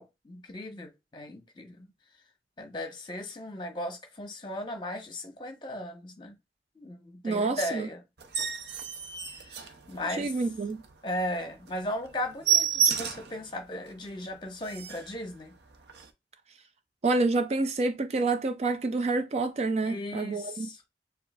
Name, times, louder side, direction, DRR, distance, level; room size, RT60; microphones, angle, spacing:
voice 1, 0.0-1.9 2.6-6.3 6.8-8.0 9.4-10.3 11.0-15.5 19.8-20.9, left 1 dB, 25° left, 1.0 m, -37 dB
voice 2, 7.2-7.9 10.2-10.8 17.0-20.7, right 3 dB, 35° right, 0.3 m, -28 dB
sound 1, 8.2-10.3 10.8-10.9 11.3-11.4 11.7-11.8 12.1-13.4 13.9-14.0 14.3-14.4 14.6-15.1 15.9-16.1, right 8 dB, 70° right, 0.6 m, -29 dB
6.9 x 2.6 x 2.3 m
head